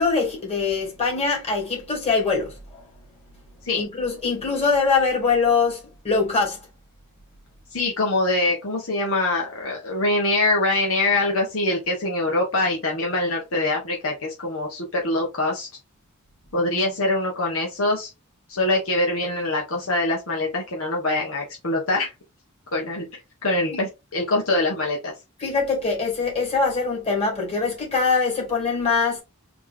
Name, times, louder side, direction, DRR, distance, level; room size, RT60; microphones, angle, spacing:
voice 1, 0.0-2.9 3.8-6.6 25.4-29.2, left 4 dB, 30° left, 2.6 m, -23 dB
voice 2, 7.7-15.7 16.5-18.1 18.5-22.1 22.7-23.0 23.4-25.1, left 2 dB, 65° left, 1.3 m, -24 dB
4.4 x 3.0 x 3.6 m
head